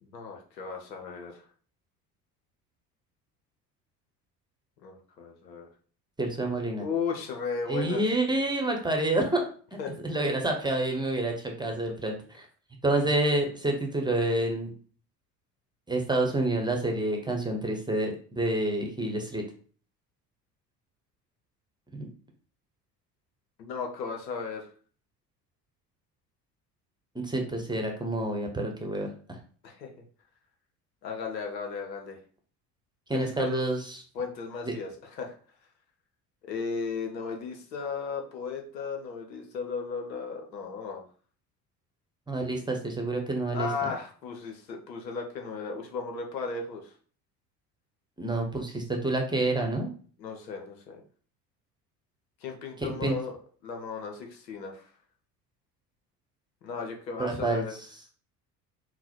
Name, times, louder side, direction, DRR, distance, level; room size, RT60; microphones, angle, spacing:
voice 1, 0.0-1.4 4.8-5.7 6.8-8.0 9.8-10.0 23.6-24.7 29.6-29.9 31.0-32.2 33.1-33.6 34.1-35.3 36.4-41.0 43.5-46.9 50.2-51.0 52.4-53.4 53.6-54.9 56.6-57.7, left 5 dB, 85° left, 2 dB, 0.9 m, -35 dB
voice 2, 6.2-6.8 7.7-9.5 10.0-12.5 12.8-14.7 15.9-19.4 21.9-22.1 27.1-29.1 33.1-34.0 34.7-34.8 42.3-43.9 48.2-49.9 53.0-53.1 57.2-57.6, right 2 dB, 10° right, 2 dB, 1.0 m, -28 dB
3.9 x 2.2 x 4.4 m, 0.43 s
hypercardioid pair, 60°, 49 cm